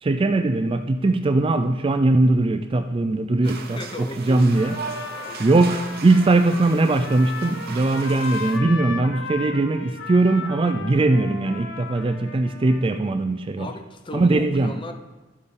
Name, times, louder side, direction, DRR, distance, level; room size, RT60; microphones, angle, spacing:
voice 1, 0.0-4.8 5.4-13.7 14.1-14.7, right 2 dB, 25° right, 8 dB, 0.4 m, -20 dB
voice 2, 3.4-4.8 5.3-5.6 13.6-14.9, left 2 dB, 25° left, 6 dB, 0.6 m, -37 dB
sound 1, 3.4-8.6, right 5 dB, 50° right, 0.8 m, -37 dB
Trumpet, 4.5-13.0, left 4 dB, 65° left, 1.0 m, -36 dB
12.5 x 7.8 x 3.8 m, 1.2 s
head